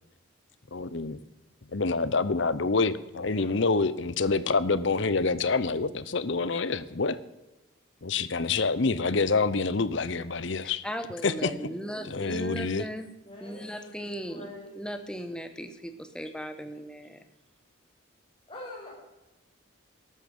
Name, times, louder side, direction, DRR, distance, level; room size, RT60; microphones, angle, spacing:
voice 1, 0.7-1.2 1.7-7.2 8.0-10.8 11.2-11.5 12.1-12.8, left 4 dB, 60° left, 15 dB, 0.7 m, -27 dB
voice 2, 3.2-3.6 13.3-14.8 18.5-18.9, left 2 dB, 25° left, -3 dB, 5.7 m, -44 dB
voice 3, 10.6-17.2, equal, 5° left, 8 dB, 1.0 m, -38 dB
13.5 x 12.0 x 5.4 m, 1.1 s
head